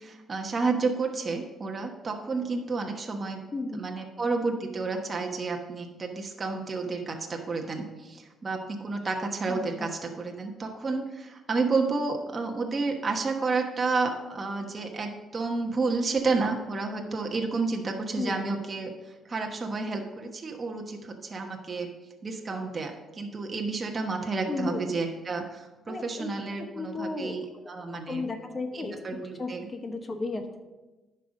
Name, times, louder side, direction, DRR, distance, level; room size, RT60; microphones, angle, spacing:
voice 1, 0.0-3.4 3.7-21.9 22.2-28.3 28.7-29.7, right 3 dB, 35° right, 2 dB, 1.1 m, -31 dB
voice 2, 9.5-9.9 18.2-18.3 24.5-24.8 25.9-26.3 26.6-27.7 28.1-30.6, left 3 dB, 30° left, 6 dB, 1.0 m, -34 dB
10.0 x 5.6 x 5.3 m, 1.1 s
cardioid pair, 90°, 0 cm